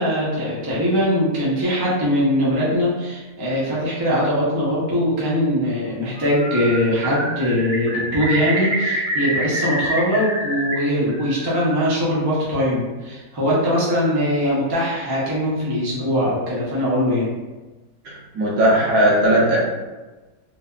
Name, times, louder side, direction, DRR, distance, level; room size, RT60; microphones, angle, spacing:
voice 1, 0.0-17.3, equal, 30° right, -7 dB, 0.5 m, -21 dB
Bird, 6.2-6.8 7.0-10.7 11.1-11.9, right 1 dB, 50° right, 0.9 m, -26 dB
voice 2, 18.0-19.6, right 1 dB, 75° right, -5 dB, 1.3 m, -17 dB
3.3 x 2.1 x 2.3 m, 1.2 s
omnidirectional pair, 1.6 m